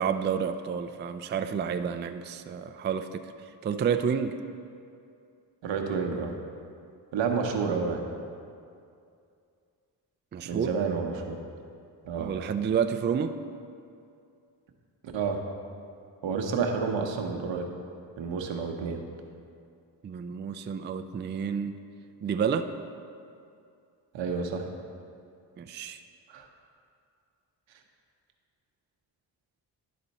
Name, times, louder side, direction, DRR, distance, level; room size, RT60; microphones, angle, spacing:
voice 1, 0.0-3.3 3.6-4.4 10.3-10.7 12.2-13.4 20.0-21.8 22.2-22.7 25.6-26.0, right 7 dB, 25° right, 9 dB, 0.3 m, -29 dB
voice 2, 5.6-6.3 7.1-8.0 10.4-11.4 12.0-12.3 15.1-15.4 16.2-17.7 18.2-19.0 24.1-24.7 26.3-26.5, right 5 dB, 80° right, 3 dB, 0.9 m, -29 dB
11.0 x 4.2 x 4.1 m, 2.4 s
cardioid pair, 60°, 44 cm